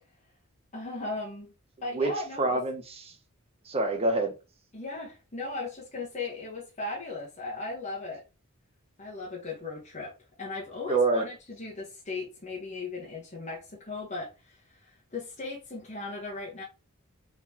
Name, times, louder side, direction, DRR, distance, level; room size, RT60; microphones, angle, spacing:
voice 1, 0.7-1.5 1.8-2.6 4.7-8.2 9.0-16.6, left 3 dB, 30° left, 1.2 m, -37 dB
voice 2, 1.9-3.1 3.7-4.3 10.9-11.2, right 3 dB, 30° right, 0.9 m, -27 dB
3.9 x 3.8 x 3.0 m
head